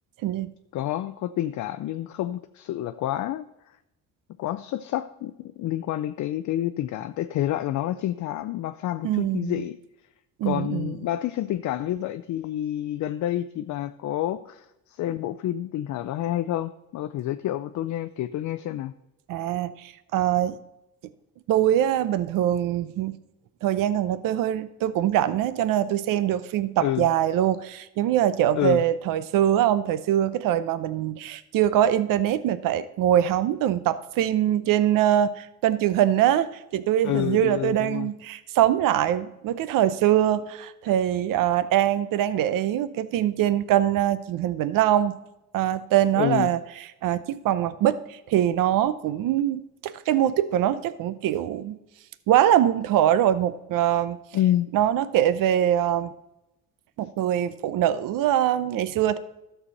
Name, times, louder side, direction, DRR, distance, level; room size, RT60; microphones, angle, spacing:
voice 1, 0.7-3.5 4.4-9.8 10.4-18.9 26.8-27.1 28.5-28.8 37.0-38.1 46.2-46.5 54.3-54.7 55.6-55.7, left 13 dB, 60° left, 0.5 m, -28 dB
voice 2, 9.0-9.5 10.4-10.9 19.3-20.6 21.5-23.2 23.6-45.2 45.5-46.6 47.0-51.8 52.3-54.2 54.7-56.1 57.0-59.2, right 11 dB, 70° right, 0.7 m, -23 dB
12.5 x 6.9 x 4.1 m
cardioid pair, 100°, 34 cm